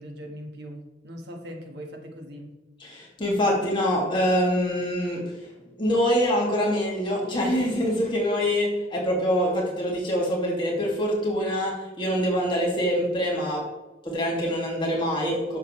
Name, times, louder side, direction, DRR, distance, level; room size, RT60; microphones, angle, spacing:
voice 1, 0.0-2.6, equal, 65° right, 3 dB, 1.6 m, -40 dB
voice 2, 2.8-5.3 5.8-13.7 14.0-15.6, equal, 25° left, -3 dB, 2.3 m, -25 dB
11.5 x 6.8 x 3.2 m, 1.0 s
head